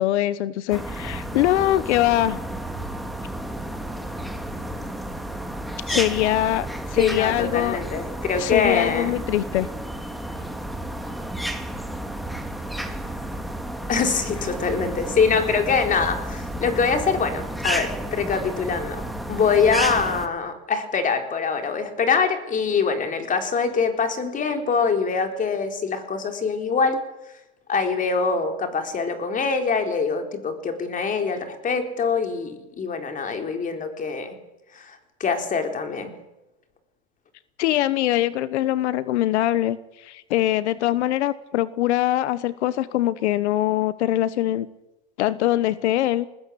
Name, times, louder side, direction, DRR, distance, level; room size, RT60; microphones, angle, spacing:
voice 1, 0.0-2.4 5.9-7.8 8.4-9.7 37.6-44.7 45.2-46.3, left 14 dB, 90° left, 16 dB, 1.2 m, -23 dB
sound 1, 0.7-20.3, right 1 dB, ahead, 2.1 m, -32 dB
voice 2, 7.0-9.1 13.9-27.0 27.7-34.4 34.7-36.1, left 5 dB, 25° left, 6 dB, 4.0 m, -24 dB
21.5 x 20.0 x 8.6 m, 0.96 s
supercardioid pair, 140°, 33 cm